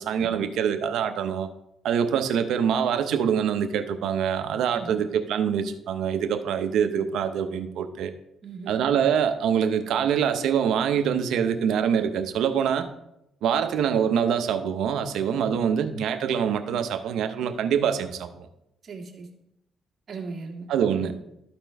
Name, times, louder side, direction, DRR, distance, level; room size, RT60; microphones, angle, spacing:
voice 1, 0.0-1.5 1.8-8.1 8.7-12.9 13.4-18.5 20.7-21.1, right 8 dB, 80° right, 9 dB, 0.6 m, -25 dB
voice 2, 8.4-8.8 15.4-15.6 18.8-19.3 20.1-20.7, right 4 dB, 50° right, 0 dB, 1.7 m, -37 dB
13.0 x 4.4 x 3.3 m, 0.84 s
cardioid pair, 90°, 0 cm